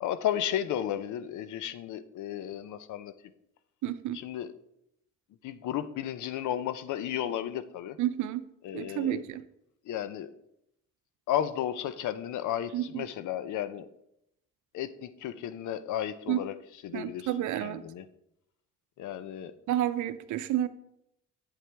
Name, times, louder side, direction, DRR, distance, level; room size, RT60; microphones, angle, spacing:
voice 1, 0.0-3.1 4.1-4.5 5.4-8.0 8.6-9.2 9.8-10.3 11.3-13.9 14.7-16.6 16.8-17.3 17.6-18.0 19.0-19.5, left 11 dB, 75° left, 13 dB, 0.6 m, -33 dB
voice 2, 3.8-4.2 8.0-8.5 8.7-9.4 12.7-13.0 16.3-16.4 16.9-17.8 19.7-20.7, right 12 dB, 75° right, 13 dB, 0.6 m, -30 dB
8.4 x 7.7 x 3.4 m, 0.79 s
cardioid pair, 90°, 30 cm